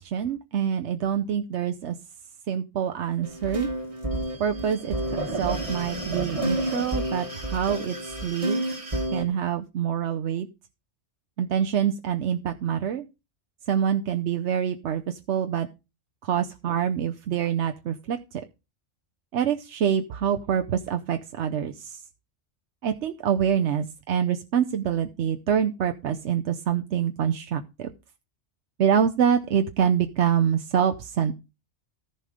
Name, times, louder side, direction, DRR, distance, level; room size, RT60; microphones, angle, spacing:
voice 1, 0.0-1.9 2.5-3.7 4.4-5.0 5.4-8.0 8.2-8.6 9.1-10.5 11.4-13.0 13.7-15.7 16.2-18.4 19.3-22.0 22.8-27.9 28.8-31.3, right 8 dB, 70° right, 6 dB, 1.0 m, -26 dB
sound 1, 3.2-9.2, right 1 dB, 30° right, 2.0 m, -30 dB
14.0 x 5.6 x 5.0 m, 0.28 s
omnidirectional pair, 1.2 m